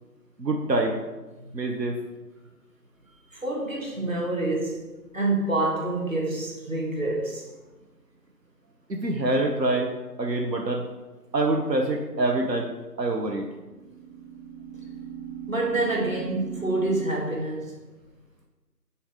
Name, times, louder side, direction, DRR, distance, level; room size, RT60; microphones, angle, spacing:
voice 1, 0.4-1.0 1.5-2.0 8.9-9.9 10.2-10.8 11.3-13.5, right 2 dB, 80° right, 1 dB, 0.9 m, -25 dB
voice 2, 3.3-4.8 5.1-7.5 15.5-17.7, right 2 dB, 55° right, -1 dB, 1.4 m, -27 dB
sound 1, 6.6-7.3 13.4-16.9, right 9 dB, 35° right, 1.6 m, -40 dB
7.5 x 4.2 x 3.5 m, 1.2 s
figure-of-eight pair, 175°, 49 cm